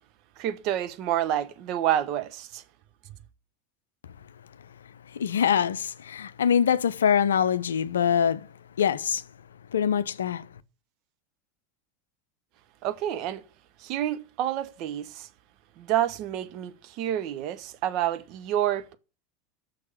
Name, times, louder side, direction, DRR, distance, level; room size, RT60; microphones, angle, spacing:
voice 1, 0.4-2.6 12.8-13.4 13.8-15.3 15.8-18.9, right 11 dB, 45° right, 0.9 m, -28 dB
voice 2, 5.1-8.5 8.8-9.2 9.7-10.5, left 8 dB, 70° left, 0.5 m, -24 dB
6.4 x 6.4 x 7.0 m
figure-of-eight pair, 80°, 0 cm